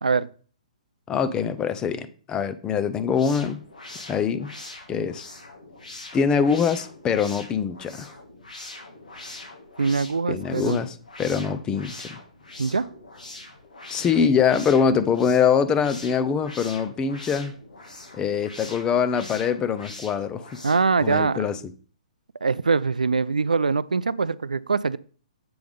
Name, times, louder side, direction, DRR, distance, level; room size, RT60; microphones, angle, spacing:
voice 1, 1.1-3.6 4.1-4.5 4.9-5.3 6.1-8.1 10.3-12.1 13.9-17.5 18.1-20.4 21.0-21.6, left 6 dB, 20° left, 0.6 m, -23 dB
sound 1, 2.9-21.0, left 2 dB, 85° left, 1.8 m, -43 dB
voice 2, 9.8-10.8 12.6-12.9 20.6-21.5 22.4-25.0, right 4 dB, 85° right, 0.3 m, -23 dB
7.8 x 3.5 x 5.3 m
figure-of-eight pair, 125°, 4 cm